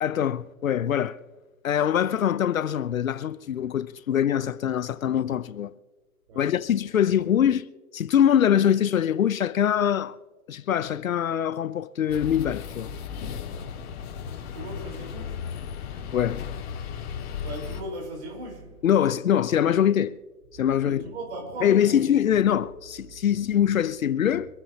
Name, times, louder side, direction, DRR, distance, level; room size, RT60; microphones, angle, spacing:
voice 1, 0.0-1.2 1.6-5.7 6.4-7.7 7.9-10.2 10.5-12.9 16.1-16.4 18.8-20.1 20.6-21.0 21.6-24.5, left 9 dB, 60° left, 0.9 m, -23 dB
sound 1, 12.1-17.8, left 7 dB, 40° left, 3.3 m, -35 dB
voice 2, 14.3-15.6 16.0-16.1 17.1-18.9 20.7-22.1 23.1-23.4, right 1 dB, 45° right, 4.7 m, -39 dB
26.5 x 9.2 x 2.9 m
hypercardioid pair, 155°, 45 cm